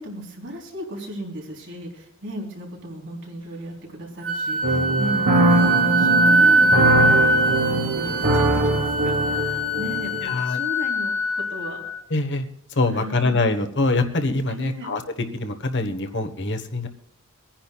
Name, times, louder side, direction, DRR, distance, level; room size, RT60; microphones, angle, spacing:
voice 1, 0.0-7.3 7.6-11.8 12.9-13.4 14.5-14.9, equal, 55° right, -1 dB, 3.7 m, -36 dB
Wind instrument woodwind instrument, 4.2-12.0, right 1 dB, 25° right, 2.4 m, -22 dB
sound 1, 4.6-10.3, right 1 dB, 75° right, 2.6 m, -22 dB
voice 2, 10.2-10.6 12.1-15.0 15.3-16.9, left 2 dB, 55° left, 7 dB, 1.3 m, -24 dB
25.0 x 10.5 x 2.4 m, 0.80 s
head